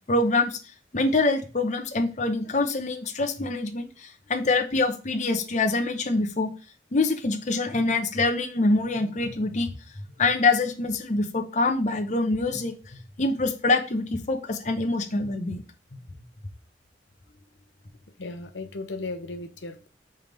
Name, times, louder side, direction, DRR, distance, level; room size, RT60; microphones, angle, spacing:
voice 1, 0.1-0.6 0.9-6.5 6.9-9.7 10.2-15.6, left 3 dB, 40° left, 5 dB, 0.8 m, -25 dB
voice 2, 18.2-19.9, left 3 dB, 85° left, 6 dB, 0.8 m, -36 dB
5.5 x 3.4 x 5.2 m, 0.36 s
head